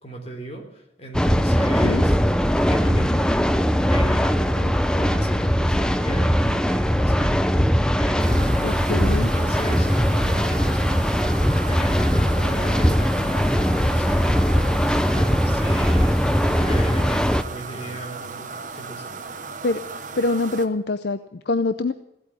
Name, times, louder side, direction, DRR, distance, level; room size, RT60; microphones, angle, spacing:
voice 1, 0.0-2.2 2.6-3.3 3.9-7.6 7.9-8.6 9.1-11.0 11.7-16.1 16.4-19.1, equal, 35° left, 2 dB, 3.4 m, -37 dB
sound 1, 1.1-17.4, equal, 5° left, 0.6 m, -20 dB
sound 2, 8.2-20.7, right 4 dB, 45° right, 1.2 m, -36 dB
voice 2, 8.6-9.3 19.6-19.8 20.2-21.9, left 3 dB, 60° left, 11 dB, 0.6 m, -24 dB
16.5 x 8.5 x 9.7 m, 0.84 s
head